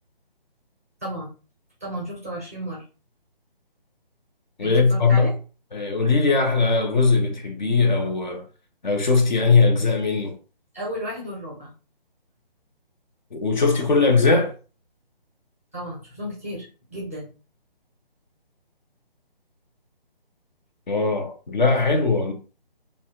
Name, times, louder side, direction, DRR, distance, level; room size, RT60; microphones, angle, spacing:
voice 1, 1.8-2.8 4.6-5.3 10.7-11.7 15.7-17.3, equal, 15° right, 0.5 m, -33 dB
voice 2, 4.6-5.3 5.7-8.5 8.8-10.4 13.3-14.6 20.9-22.3, left 4 dB, 50° left, 0.6 m, -20 dB
2.6 x 2.1 x 2.2 m
figure-of-eight pair, 155°, 29 cm